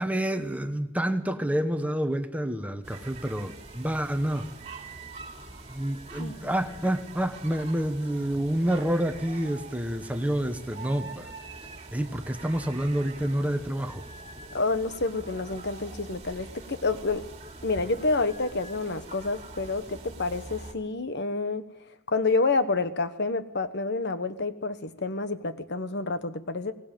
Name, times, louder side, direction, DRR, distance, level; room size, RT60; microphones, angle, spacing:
voice 1, 0.0-4.5 5.7-11.3 11.9-14.0, right 1 dB, 5° right, 7 dB, 1.3 m, -28 dB
sound 1, 2.8-20.7, right 3 dB, 30° right, 3.2 m, -44 dB
voice 2, 14.5-17.2 17.6-21.7 22.1-26.7, left 3 dB, 55° left, 11 dB, 1.3 m, -28 dB
22.0 x 19.0 x 9.2 m, 0.96 s
head